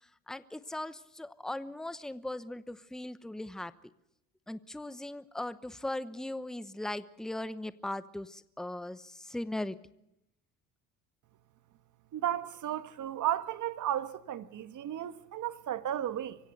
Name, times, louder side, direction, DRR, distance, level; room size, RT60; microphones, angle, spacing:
voice 1, 0.3-3.7 4.5-9.8, left 1 dB, ahead, 0.9 m, -39 dB
voice 2, 12.1-16.4, right 11 dB, 50° right, 1.4 m, -34 dB
24.5 x 16.0 x 8.0 m
hypercardioid pair, 70°, 38 cm